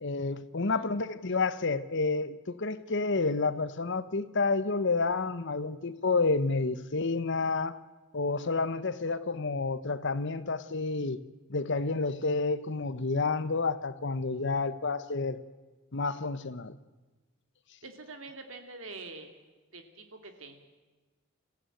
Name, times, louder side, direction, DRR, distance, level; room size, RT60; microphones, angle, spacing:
voice 1, 0.0-7.8 8.1-11.2 11.5-15.4 15.9-16.8, left 3 dB, 60° left, 1.0 m, -30 dB
voice 2, 17.8-19.3 19.7-20.6, right 3 dB, 65° right, 2.7 m, -45 dB
25.0 x 15.5 x 9.1 m
head